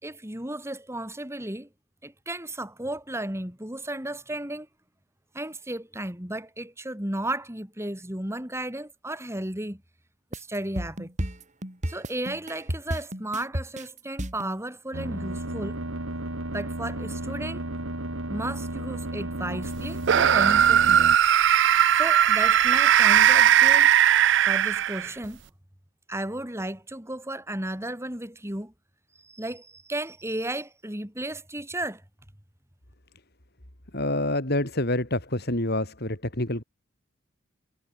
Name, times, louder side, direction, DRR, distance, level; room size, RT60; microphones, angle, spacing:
voice 1, 0.0-1.7 2.0-4.7 5.3-9.8 10.3-11.1 11.9-15.8 16.5-17.6 18.3-21.1 21.9-23.9 24.5-25.4 26.1-28.7 29.2-32.0, right 1 dB, 15° right, 3.6 m, -34 dB
sound 1, 10.3-14.5, equal, 35° right, 5.2 m, -32 dB
sound 2, 14.9-21.2, right 1 dB, 90° right, 4.2 m, -33 dB
sound 3, 20.0-25.2, right 10 dB, 60° right, 0.5 m, -18 dB
voice 2, 33.9-36.6, left 1 dB, 50° left, 4.2 m, -27 dB
head